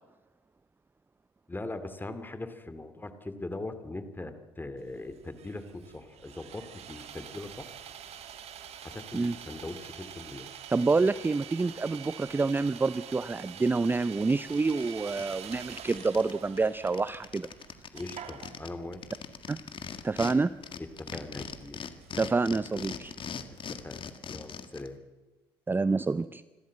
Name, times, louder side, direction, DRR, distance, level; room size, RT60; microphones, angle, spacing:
voice 1, 1.5-7.7 8.8-10.5 17.9-19.1 20.8-21.8 23.7-25.0, left 2 dB, 15° left, 10 dB, 2.5 m, -41 dB
Sawing, 4.8-24.2, right 9 dB, 55° right, 1.8 m, -47 dB
voice 2, 10.7-17.5 19.5-19.6 20.0-20.5 22.2-23.1 25.7-26.4, right 3 dB, 15° right, 16 dB, 0.5 m, -27 dB
sound 1, 14.0-14.1 14.4-16.3 16.6-16.7 16.9-20.3 20.6-24.9, left 7 dB, 40° left, 1.8 m, -41 dB
26.5 x 13.0 x 7.7 m, 1.2 s
hypercardioid pair, 60°, 13 cm